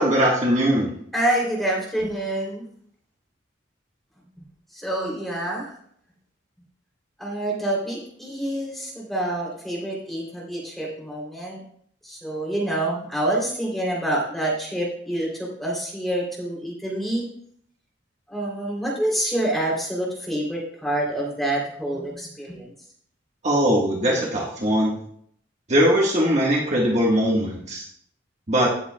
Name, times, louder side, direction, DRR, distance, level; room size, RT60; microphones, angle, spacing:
voice 1, 0.0-0.9 23.4-25.0 25.7-27.8 28.5-28.7, equal, 40° right, -3 dB, 1.5 m, -20 dB
voice 2, 1.1-2.6 4.7-5.7 7.2-11.6 12.0-17.3 18.3-22.7, right 1 dB, ahead, -3 dB, 3.1 m, -27 dB
17.0 x 8.0 x 2.3 m, 0.64 s
head